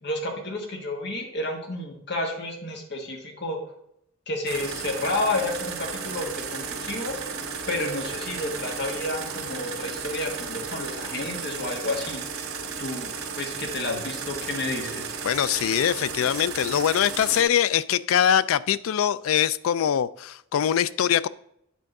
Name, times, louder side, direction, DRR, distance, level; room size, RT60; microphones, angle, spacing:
voice 1, 0.0-3.6 4.3-7.1 7.7-12.5 12.8-13.1 13.4-15.1, left 2 dB, 50° left, 1.4 m, -31 dB
sound 1, 4.5-17.4, right 5 dB, 80° right, 1.5 m, -34 dB
voice 2, 15.2-21.3, left 9 dB, 75° left, 0.3 m, -23 dB
9.4 x 3.7 x 6.5 m
head